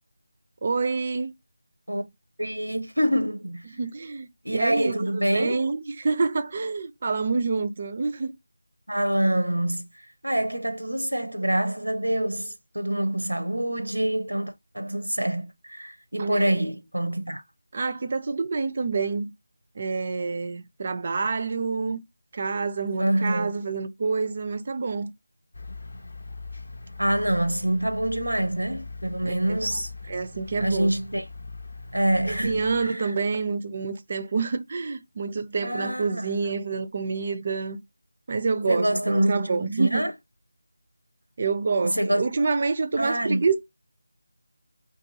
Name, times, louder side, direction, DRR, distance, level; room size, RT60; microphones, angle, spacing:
voice 1, 0.6-1.3 3.7-8.4 16.1-16.6 17.7-19.3 19.8-22.0 22.3-25.1 29.2-29.6 30.1-30.9 32.2-37.8 38.3-40.0 41.4-43.6, right 4 dB, 35° right, 0.4 m, -27 dB
voice 2, 2.4-3.7 4.4-5.7 8.9-17.4 23.0-23.5 27.0-29.9 30.6-31.2 31.9-33.1 35.6-36.3 38.7-40.1 41.8-42.2 43.0-43.4, right 1 dB, 85° right, 0.6 m, -26 dB
sound 1, 25.5-32.9, left 3 dB, 60° left, 0.6 m, -41 dB
2.7 x 2.6 x 3.8 m
figure-of-eight pair, 165°, 0 cm